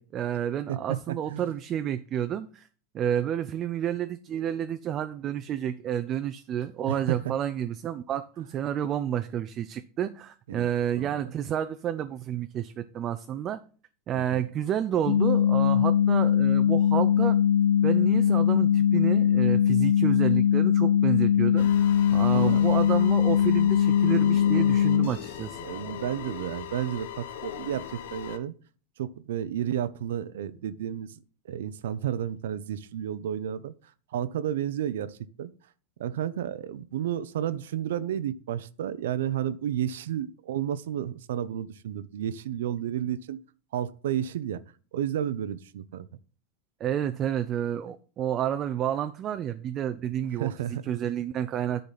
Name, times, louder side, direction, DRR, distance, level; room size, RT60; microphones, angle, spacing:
voice 1, 0.0-2.7 2.9-13.6 14.1-17.4 17.8-21.7 22.1-25.6 46.8-51.8, right 10 dB, 30° right, 0.4 m, -30 dB
voice 2, 0.7-1.5 6.9-7.3 10.5-10.7 11.0-11.3 14.1-14.4 22.3-22.6 25.6-28.5 29.0-31.2 31.5-33.7 34.1-35.5 36.0-43.4 43.7-44.6 44.9-46.1 50.4-50.9, right 10 dB, 85° right, 0.6 m, -32 dB
sound 1, 15.1-25.1, left 9 dB, 45° left, 1.2 m, -21 dB
sound 2, 21.6-28.4, left 10 dB, 80° left, 0.9 m, -39 dB
10.0 x 3.9 x 5.8 m
supercardioid pair, 150°, 0 cm